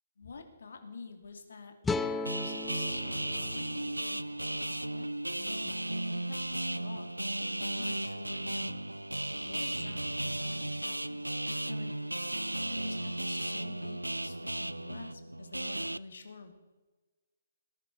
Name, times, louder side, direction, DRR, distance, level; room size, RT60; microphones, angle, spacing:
voice 1, 0.2-5.7 6.0-8.8 9.4-11.9 12.6-16.5, left 4 dB, 60° left, 6 dB, 2.6 m, -49 dB
sound 1, 1.8-5.0, left 4 dB, 5° left, 0.6 m, -37 dB
sound 2, 2.3-16.0, right 1 dB, 85° right, 0.4 m, -35 dB
19.0 x 11.0 x 5.3 m, 1.2 s
figure-of-eight pair, 135°, 0 cm